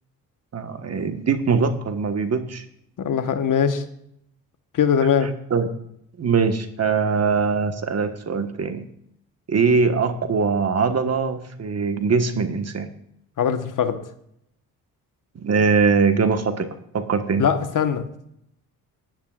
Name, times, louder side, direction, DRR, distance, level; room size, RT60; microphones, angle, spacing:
voice 1, 0.5-2.6 5.5-5.7 6.2-8.9 9.5-12.9 15.3-16.7 16.9-17.4, right 5 dB, 45° right, 8 dB, 1.5 m, -22 dB
voice 2, 3.0-3.8 4.7-5.3 13.4-14.0 17.4-18.1, left 7 dB, 60° left, 8 dB, 1.4 m, -21 dB
18.0 x 10.5 x 2.5 m, 0.74 s
cardioid pair, 75°, 36 cm